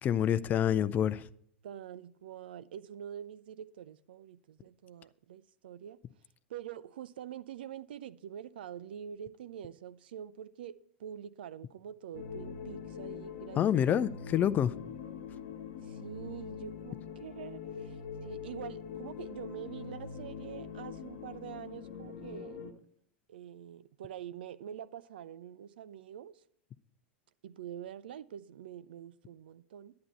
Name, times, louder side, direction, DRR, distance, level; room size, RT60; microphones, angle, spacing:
voice 1, 0.0-1.3 13.6-14.7, left 10 dB, 30° left, 0.5 m, -27 dB
voice 2, 1.6-6.0 6.5-14.2 15.8-22.9 23.3-26.4 27.4-29.9, right 10 dB, 65° right, 0.5 m, -46 dB
sound 1, 12.1-22.7, left 6 dB, 55° left, 1.1 m, -43 dB
11.0 x 9.6 x 4.3 m
figure-of-eight pair, 90°, 6 cm